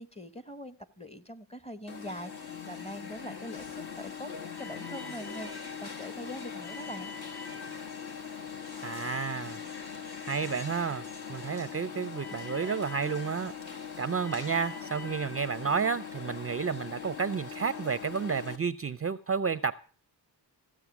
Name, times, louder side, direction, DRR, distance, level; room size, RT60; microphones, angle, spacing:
voice 1, 0.0-7.1, equal, 15° left, 1.0 m, -43 dB
Alarm, 1.9-18.6, left 6 dB, 60° left, 1.9 m, -41 dB
voice 2, 8.8-9.6 10.3-11.0 11.3-13.5 14.0-19.7, right 6 dB, 35° right, 0.5 m, -31 dB
15.0 x 7.6 x 6.0 m
cardioid pair, 80°, 43 cm